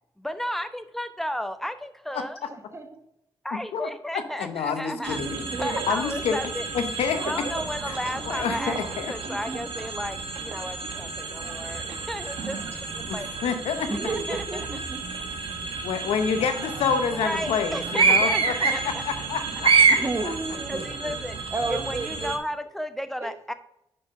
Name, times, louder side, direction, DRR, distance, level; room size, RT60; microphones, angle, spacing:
voice 1, 0.2-2.4 3.4-5.2 5.6-6.7 7.0-8.8 9.1-12.6 12.9-13.3 14.0-14.6 17.1-19.0 20.7-21.4 21.7-23.5, equal, 5° left, 10 dB, 0.9 m, -33 dB
voice 2, 2.5-3.0 4.7-5.7 8.1-8.3 9.2-9.7 13.8-15.3 16.4-16.7 19.9-20.8 21.5-22.3 23.2-23.3, right 3 dB, 30° right, 7 dB, 1.2 m, -34 dB
voice 3, 3.5-3.9 4.1-5.4 5.9-6.4 6.7-7.4 7.9-8.0 8.3-9.1 13.1-13.9 15.8-20.0 20.2-20.3, left 6 dB, 85° left, 9 dB, 0.8 m, -28 dB
sound 1, 5.0-22.4, right 5 dB, 65° right, 1.1 m, -28 dB
5.4 x 5.3 x 5.4 m, 0.80 s
supercardioid pair, 50°, 10 cm